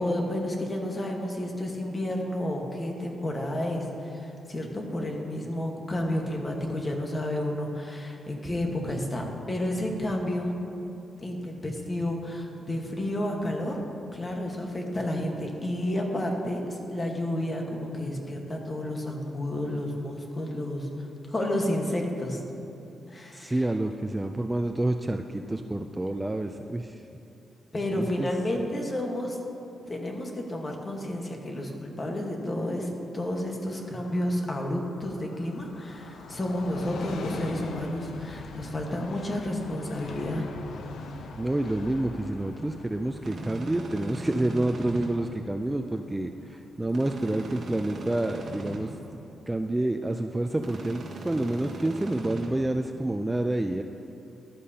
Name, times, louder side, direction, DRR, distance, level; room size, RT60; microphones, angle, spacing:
voice 1, 0.0-10.6 11.2-13.8 14.1-22.4 23.1-23.6 27.7-29.4 29.9-40.5, left 1 dB, 25° left, 1 dB, 1.3 m, -31 dB
voice 2, 23.3-27.0 27.9-28.3 41.4-48.9 49.5-53.8, right 1 dB, 10° right, 6 dB, 0.3 m, -28 dB
Train, 33.7-47.1 47.4-47.5, left 4 dB, 80° left, 0.7 m, -43 dB
sound 1, 43.2-45.1 46.9-48.8 50.6-52.5, right 2 dB, 55° right, 1.8 m, -38 dB
14.0 x 11.5 x 2.8 m, 2.7 s
wide cardioid pair, 135°, 0 cm